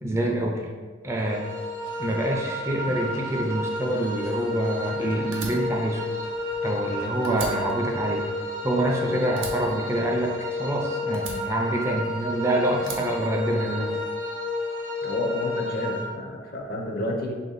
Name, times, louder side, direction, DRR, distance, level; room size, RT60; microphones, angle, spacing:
voice 1, 0.0-0.6 1.0-1.4 2.0-6.0 6.6-8.2 8.6-13.9, right 1 dB, 15° right, -1 dB, 0.4 m, -26 dB
sound 1, 1.2-16.0, left 2 dB, 90° left, 1.0 m, -31 dB
Fire, 5.3-6.9 7.2-9.0 9.4-10.7 11.1-12.3 12.8-14.0, right 4 dB, 75° right, 0.7 m, -39 dB
voice 2, 15.0-17.4, left 1 dB, 50° left, 0 dB, 0.6 m, -30 dB
3.3 x 2.6 x 3.9 m, 1.4 s
head